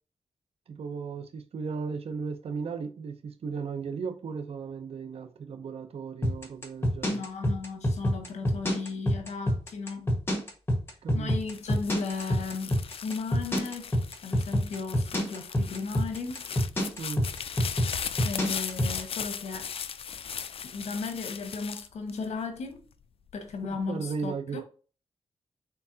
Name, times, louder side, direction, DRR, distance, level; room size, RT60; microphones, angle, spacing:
voice 1, 0.7-7.3 11.0-11.3 17.0-17.2 23.7-24.6, right 5 dB, 60° right, 0.6 m, -36 dB
sound 1, 6.2-19.0, equal, 20° left, 1.4 m, -26 dB
voice 2, 7.0-10.1 11.1-13.9 14.2-16.4 18.2-19.7 20.7-22.8 23.3-24.6, left 4 dB, 85° left, 1.1 m, -35 dB
sound 2, 11.4-22.8 23.3-23.9, left 7 dB, 55° left, 0.4 m, -38 dB
4.4 x 4.0 x 2.7 m
cardioid pair, 90°, 11 cm